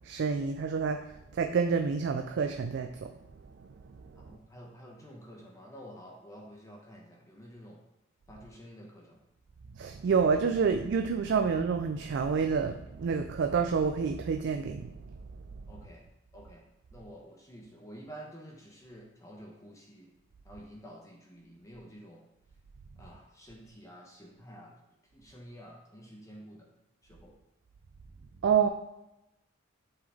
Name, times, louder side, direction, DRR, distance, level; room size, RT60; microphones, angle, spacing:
voice 1, 0.0-1.0 1.3-3.1 9.8-14.9 28.4-28.7, right 6 dB, 60° right, 5 dB, 0.4 m, -28 dB
voice 2, 4.3-7.8 8.3-9.0 15.7-16.0 16.3-16.6 16.9-20.1 20.5-22.2 23.0-24.7 25.1-26.6 27.2-27.3, equal, 15° left, -1 dB, 0.9 m, -49 dB
7.8 x 3.8 x 3.4 m, 0.91 s
head